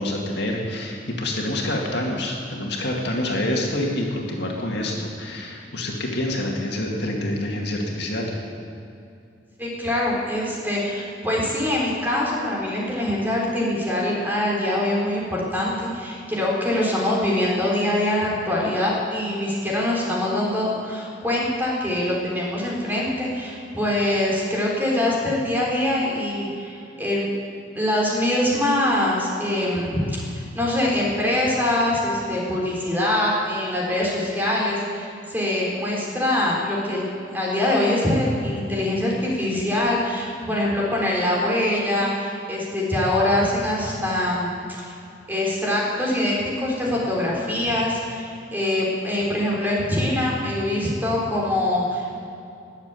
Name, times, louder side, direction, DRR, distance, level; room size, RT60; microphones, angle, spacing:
voice 1, 0.0-8.3, left 1 dB, 65° left, -1 dB, 2.2 m, -27 dB
voice 2, 9.6-27.3 27.7-44.5 44.8-45.0 45.3-52.2, left 1 dB, 10° right, -4 dB, 4.0 m, -24 dB
20.5 x 7.6 x 8.3 m, 2.6 s
head